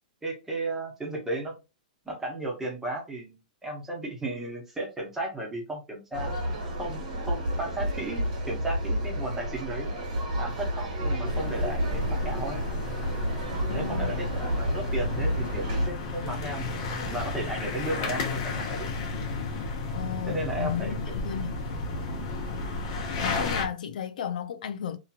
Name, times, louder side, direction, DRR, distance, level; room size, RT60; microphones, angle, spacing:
voice 1, 0.2-1.5 2.0-6.3 6.8-7.0 7.3-9.9 10.3-12.6 13.7-16.7 17.0-18.9 20.3-21.2, right 2 dB, 5° right, 0.9 m, -34 dB
sound 1, 6.1-15.9, equal, 65° right, 1.4 m, -30 dB
sound 2, 11.2-23.7, left 3 dB, 40° left, 0.8 m, -33 dB
voice 2, 13.7-14.1 19.9-21.6 23.2-25.0, left 8 dB, 70° left, 0.4 m, -34 dB
2.8 x 2.8 x 2.4 m
hypercardioid pair, 160°, 4 cm